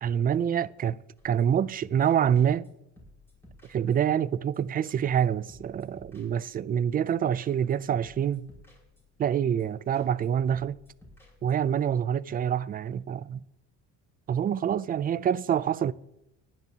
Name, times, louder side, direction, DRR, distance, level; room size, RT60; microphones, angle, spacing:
voice 1, 0.0-2.7 3.7-8.5 9.2-10.8 11.4-13.4 14.3-15.9, right 9 dB, 25° right, 0.4 m, -26 dB
sound 1, 1.2-1.7 2.0-2.7 3.0-4.3 4.5-4.6 4.9-5.2 5.5-6.8 7.1-7.2 7.4-7.8 8.0-9.3 9.6-9.7 9.9-10.3 10.5-11.8, left 1 dB, 5° left, 5.2 m, -56 dB
22.0 x 10.5 x 2.8 m
cardioid pair, 120°, 34 cm